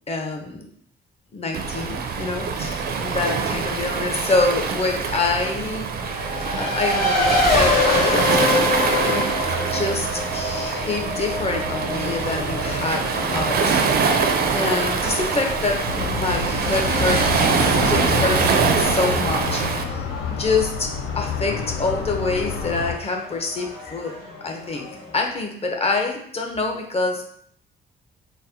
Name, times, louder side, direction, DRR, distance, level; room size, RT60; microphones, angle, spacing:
voice 1, 0.1-0.7 1.3-5.9 6.6-8.4 9.0-9.3 9.6-14.3 14.5-17.2 17.6-20.9 21.1-24.1 24.4-24.9 25.1-27.2, left 3 dB, 30° left, 2 dB, 0.7 m, -26 dB
Waves surf, 1.5-19.8, right 5 dB, 55° right, 0.5 m, -24 dB
Race car auto racing, 6.0-25.1, left 2 dB, 50° left, 1.2 m, -27 dB
sound 1, 15.9-23.0, left 7 dB, 75° left, 0.4 m, -29 dB
4.0 x 2.1 x 2.7 m, 0.64 s
cardioid pair, 90°, 20 cm